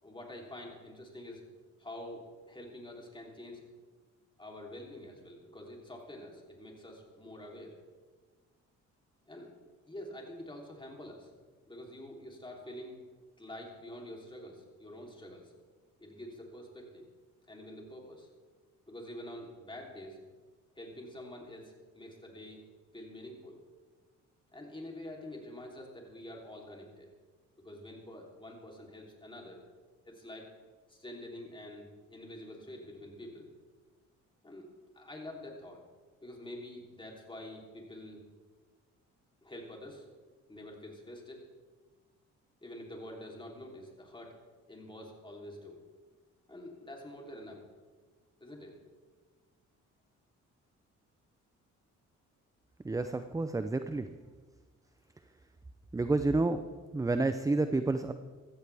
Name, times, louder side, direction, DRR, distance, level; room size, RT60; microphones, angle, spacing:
voice 1, 0.0-1.4 1.8-3.6 4.4-7.7 9.3-9.5 9.9-11.3 11.7-13.0 13.4-15.5 16.0-17.0 17.5-18.3 18.9-20.2 20.8-22.6 22.9-23.6 24.5-27.1 27.6-29.6 30.0-30.5 30.9-33.5 34.4-34.7 34.9-35.8 36.2-38.2 39.4-40.1 40.5-41.5 42.6-44.3 44.7-45.8 46.5-47.6 48.4-48.8, left 1 dB, 15° left, 0 dB, 3.3 m, -47 dB
voice 2, 52.8-54.1 55.9-56.6 56.9-58.1, right 2 dB, 10° right, 10 dB, 0.5 m, -29 dB
15.0 x 14.5 x 3.5 m, 1.4 s
cardioid pair, 90°, 30 cm